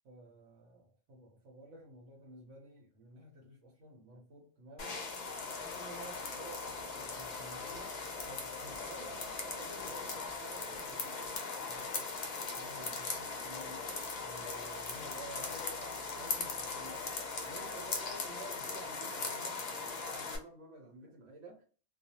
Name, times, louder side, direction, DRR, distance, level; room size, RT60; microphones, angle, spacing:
voice 1, 0.0-5.0 5.6-8.0 8.3-11.4 11.7-12.1 12.5-13.9 14.2-19.6 20.1-21.6, right 2 dB, 85° right, 1.1 m, -52 dB
sound 1, 4.8-20.4, left 4 dB, 50° left, 0.5 m, -39 dB
2.4 x 2.2 x 2.7 m
omnidirectional pair, 1.2 m